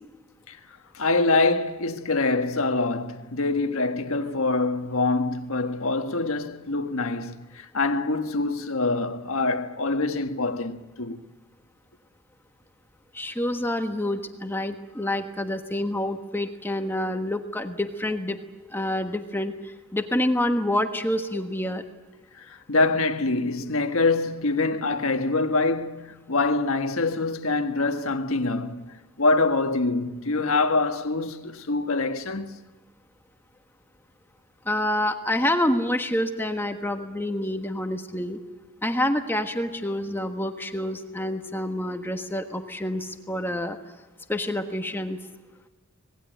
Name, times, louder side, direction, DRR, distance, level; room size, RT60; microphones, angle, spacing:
voice 1, 0.9-11.2 22.4-28.8 29.2-32.5, left 3 dB, 70° left, 1.5 m, -25 dB
voice 2, 13.1-18.4 18.7-21.8 34.6-38.4 38.8-43.8 44.3-45.2, left 1 dB, 10° left, 1.4 m, -27 dB
26.0 x 19.0 x 9.2 m
head